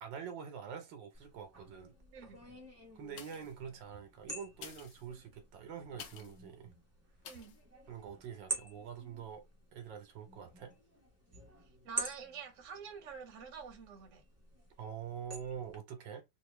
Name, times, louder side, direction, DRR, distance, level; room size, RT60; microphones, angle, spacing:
voice 1, 0.0-1.9 2.9-6.7 7.9-9.5 9.7-10.7 14.8-16.2, right 7 dB, 80° right, 1.6 m, -45 dB
sound 1, 1.1-15.8, right 2 dB, 15° right, 0.6 m, -48 dB
sound 2, 3.1-3.7 4.5-6.4 7.2-7.6 8.1-8.2, left 8 dB, 85° left, 1.5 m, -52 dB
voice 2, 7.3-7.6 11.8-14.2, right 6 dB, 50° right, 1.2 m, -47 dB
3.6 x 2.6 x 3.1 m
omnidirectional pair, 2.0 m